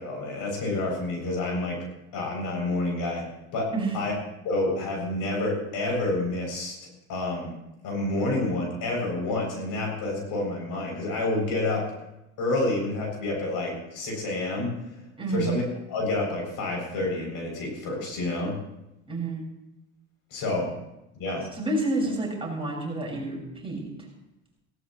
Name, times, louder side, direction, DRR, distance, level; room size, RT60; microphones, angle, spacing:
voice 1, 0.0-1.8 2.1-3.2 3.5-3.7 3.9-4.1 4.4-6.8 7.1-7.5 7.8-11.8 12.4-14.7 15.3-15.6 15.9-18.5 20.3-20.7 21.2-21.4, left 2 dB, 55° left, 0 dB, 7.4 m, -28 dB
voice 2, 15.2-15.5 19.1-19.5 21.6-23.9, right 2 dB, 15° right, -3 dB, 5.8 m, -29 dB
18.0 x 17.5 x 3.2 m, 0.88 s
hypercardioid pair, 85°, 39 cm